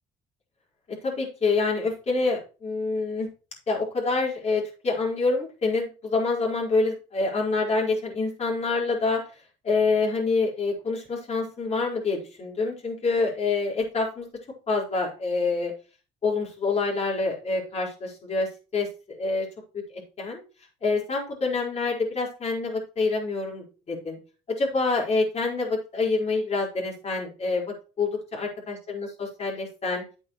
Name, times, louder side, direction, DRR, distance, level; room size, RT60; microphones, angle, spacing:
voice 1, 1.0-3.3 3.7-9.2 9.6-14.3 14.7-15.7 16.2-19.5 19.7-20.4 20.8-24.2 24.6-30.0, left 3 dB, 40° left, -2 dB, 4.7 m, -27 dB
10.0 x 8.7 x 3.1 m, 0.34 s
cardioid pair, 110°, 17 cm